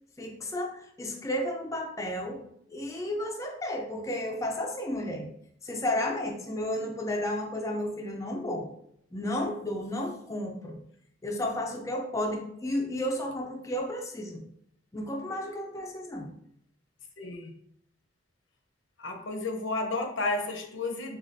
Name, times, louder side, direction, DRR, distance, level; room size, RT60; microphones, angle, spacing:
voice 1, 0.2-2.4 2.7-5.3 5.6-8.7 9.1-10.8 11.2-14.4 14.9-16.3, left 1 dB, 15° left, 1 dB, 0.4 m, -32 dB
voice 2, 17.2-17.5 19.0-21.2, left 2 dB, 80° left, 4 dB, 0.8 m, -32 dB
7.0 x 2.3 x 2.6 m, 0.72 s
head